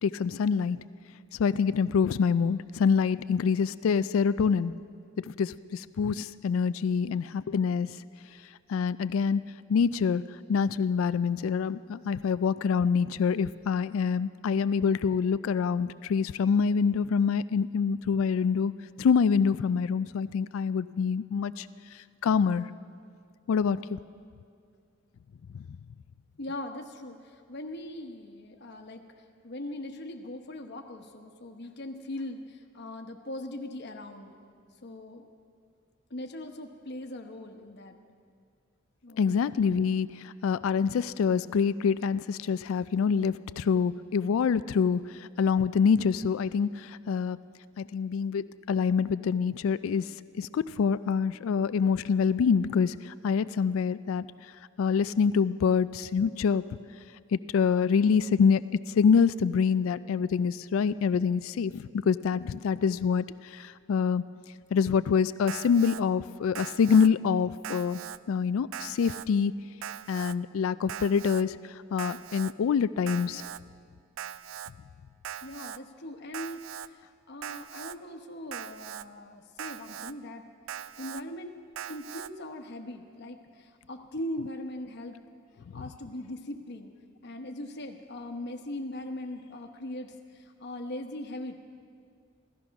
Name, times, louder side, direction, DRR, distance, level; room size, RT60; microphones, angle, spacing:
voice 1, 0.0-0.8 1.4-4.7 5.2-8.0 8.7-9.4 9.7-10.2 10.5-18.7 19.0-21.7 22.2-22.7 23.5-24.0 39.2-47.4 47.8-50.1 50.4-54.3 54.8-56.6 57.3-58.6 59.0-64.2 64.7-68.0 68.3-69.5 70.1-73.4 85.7-85.8, left 6 dB, 80° left, 15 dB, 0.3 m, -26 dB
voice 2, 26.4-27.2 27.5-29.0 29.4-34.4 34.8-35.2 36.1-38.0 39.0-39.3 75.4-80.5 81.0-81.5 81.9-85.2 85.7-86.9 87.2-91.5, left 1 dB, 55° left, 5 dB, 1.1 m, -40 dB
Alarm, 65.5-66.0 66.5-67.1 67.6-68.2 68.7-69.3 69.8-70.3 70.9-71.4 72.0-72.5 73.1-73.6 74.2-74.7 75.2-75.8 76.3-76.9 77.4-77.9 78.5-79.0 79.6-80.1 80.7-81.2 81.8-82.3, right 9 dB, 70° right, 0.3 m, -40 dB
16.0 x 13.5 x 5.9 m, 2.2 s
head